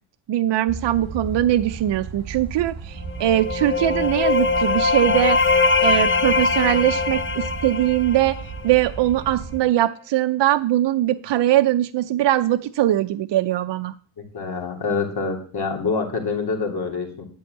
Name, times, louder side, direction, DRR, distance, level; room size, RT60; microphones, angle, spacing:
voice 1, 0.3-5.4 5.8-8.4 8.6-13.9, right 13 dB, 70° right, 8 dB, 0.6 m, -21 dB
sound 1, 0.7-9.6, right 5 dB, 50° right, 2.4 m, -35 dB
sound 2, 3.1-8.8, left 4 dB, 25° left, 0.7 m, -22 dB
voice 2, 14.3-17.3, left 4 dB, 55° left, 1 dB, 3.3 m, -26 dB
11.5 x 5.4 x 8.4 m, 0.43 s
wide cardioid pair, 125°, 45 cm